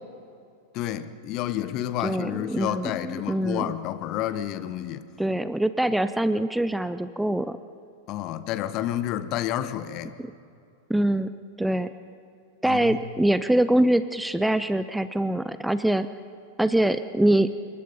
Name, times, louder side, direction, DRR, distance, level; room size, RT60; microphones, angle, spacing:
voice 1, 0.7-5.1 8.1-10.1 12.6-13.0, left 12 dB, 40° left, 1.1 m, -30 dB
voice 2, 2.0-3.6 5.2-7.6 10.9-11.3 11.6-11.9 12.6-16.1 16.6-17.5, right 1 dB, 5° right, 0.6 m, -24 dB
27.0 x 22.0 x 5.5 m
figure-of-eight pair, 90°, 0 cm